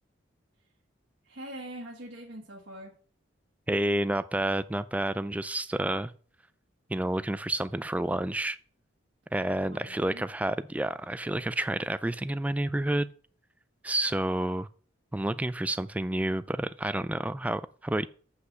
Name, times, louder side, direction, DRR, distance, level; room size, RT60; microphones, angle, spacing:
voice 1, 1.2-2.9 9.7-10.2, right 1 dB, 60° right, -3 dB, 1.5 m, -43 dB
voice 2, 3.7-6.1 6.9-8.6 9.3-13.1 13.8-14.7 15.1-18.1, right 1 dB, 5° right, 15 dB, 0.3 m, -29 dB
7.9 x 5.7 x 6.5 m, 0.44 s
head